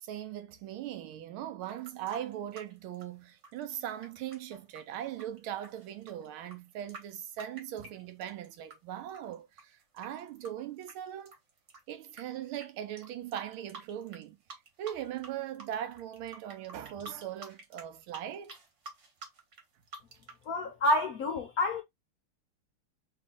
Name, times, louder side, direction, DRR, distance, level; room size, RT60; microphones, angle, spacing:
voice 1, 0.0-11.3 11.9-14.4 14.8-18.6, right 11 dB, 80° right, 1.5 m, -40 dB
sound 1, 1.6-8.8 9.1-12.2 12.5-12.7 13.0-14.2 14.5-15.3 15.5-20.4, right 3 dB, 45° right, 1.2 m, -49 dB
voice 2, 20.5-21.8, left 1 dB, 70° left, 0.9 m, -28 dB
3.5 x 2.7 x 3.6 m
omnidirectional pair, 2.3 m